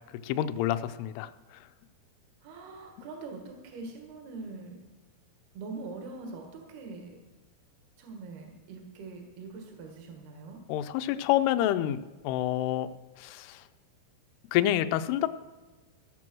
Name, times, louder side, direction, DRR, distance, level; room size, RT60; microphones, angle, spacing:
voice 1, 0.2-1.3 10.7-12.9 13.2-13.6 14.5-15.3, left 12 dB, 85° left, 11 dB, 2.7 m, -28 dB
voice 2, 2.4-4.8 5.6-7.2 8.0-10.6, right 3 dB, 70° right, 2 dB, 3.5 m, -43 dB
16.0 x 7.5 x 6.1 m, 1.3 s
omnidirectional pair, 4.7 m